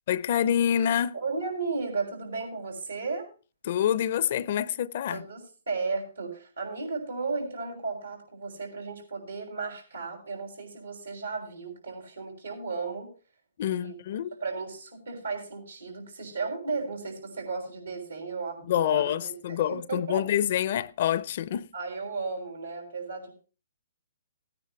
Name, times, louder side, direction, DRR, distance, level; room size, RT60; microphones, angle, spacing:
voice 1, 0.1-1.2 3.6-5.2 13.6-14.4 18.7-21.7, left 10 dB, 50° left, 0.5 m, -27 dB
voice 2, 1.1-3.3 5.1-13.1 13.7-14.0 14.3-20.3 21.7-23.3, right 4 dB, 90° right, 6.5 m, -34 dB
17.5 x 9.7 x 3.1 m
hypercardioid pair, 135°, 0 cm